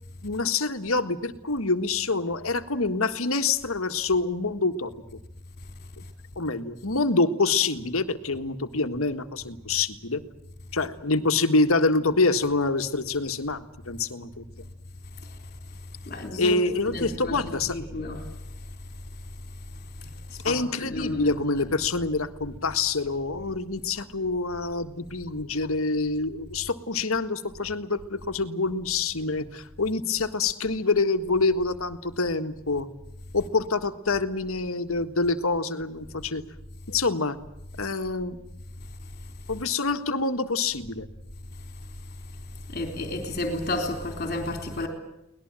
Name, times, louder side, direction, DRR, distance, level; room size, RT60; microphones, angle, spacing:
voice 1, 0.2-4.9 6.3-10.2 10.7-14.4 16.4-17.8 20.4-32.9 33.3-36.4 36.9-37.4 37.8-38.4 39.5-41.1, left 3 dB, 75° left, 1.7 m, -26 dB
voice 2, 16.1-16.5 16.9-17.4 17.7-18.2 20.3-20.5 20.9-21.3 42.7-44.9, left 2 dB, 40° left, 3.6 m, -31 dB
24.0 x 19.0 x 8.9 m
head